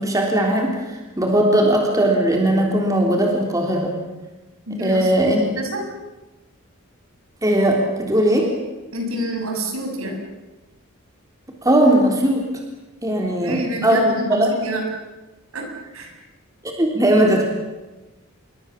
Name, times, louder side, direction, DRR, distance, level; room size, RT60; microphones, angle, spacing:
voice 1, 0.0-4.0 4.8-5.4 7.4-8.5 11.6-12.5 13.0-14.5 16.6-17.4, right 1 dB, 15° right, 1 dB, 3.4 m, -18 dB
voice 2, 4.7-5.8 8.9-10.2 13.4-14.8 15.5-15.6 15.9-16.1, right 1 dB, 65° right, 3 dB, 6.7 m, -28 dB
28.0 x 23.5 x 7.4 m, 1.1 s
head